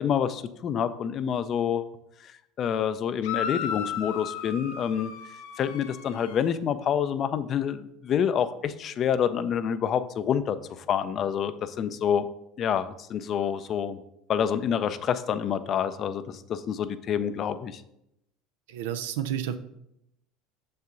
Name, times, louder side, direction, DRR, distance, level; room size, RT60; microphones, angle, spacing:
voice 1, 0.0-1.9 2.2-5.1 5.6-12.3 12.6-14.0 14.3-17.8, left 8 dB, 45° left, 12 dB, 0.5 m, -27 dB
sound 1, 3.2-6.5, left 8 dB, 80° left, 0.8 m, -35 dB
voice 2, 18.7-19.6, right 10 dB, 85° right, 9 dB, 0.6 m, -30 dB
6.6 x 5.6 x 3.8 m, 0.80 s
supercardioid pair, 100°, 0 cm